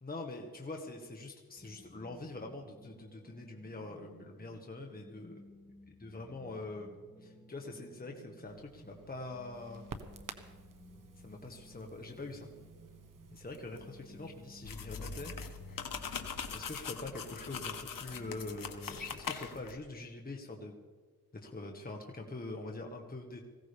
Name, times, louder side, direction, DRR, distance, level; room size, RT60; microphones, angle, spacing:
voice 1, 0.0-5.4 6.0-9.8 11.2-12.5 13.3-15.3 16.5-20.7 21.3-23.5, left 2 dB, 25° left, 2 dB, 1.7 m, -44 dB
sound 1, 1.6-19.2, equal, ahead, 2.6 m, -58 dB
Crackle, 8.5-16.7, right 4 dB, 60° right, 1.3 m, -53 dB
sound 2, 14.6-19.8, left 6 dB, 60° left, 1.4 m, -42 dB
20.0 x 16.5 x 3.5 m, 1.4 s
cardioid pair, 75°, 37 cm